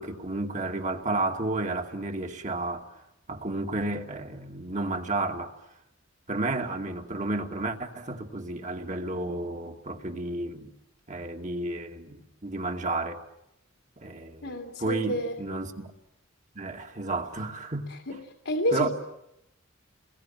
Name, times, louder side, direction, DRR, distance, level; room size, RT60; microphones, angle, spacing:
voice 1, 0.0-3.0 3.3-5.5 6.3-10.7 11.1-13.2 14.0-15.9 16.6-17.9 18.7-18.9, right 2 dB, 40° right, 2.5 m, -32 dB
voice 2, 14.4-15.4 17.9-18.2 18.4-18.9, equal, 75° left, 2.5 m, -29 dB
29.0 x 22.5 x 9.1 m
head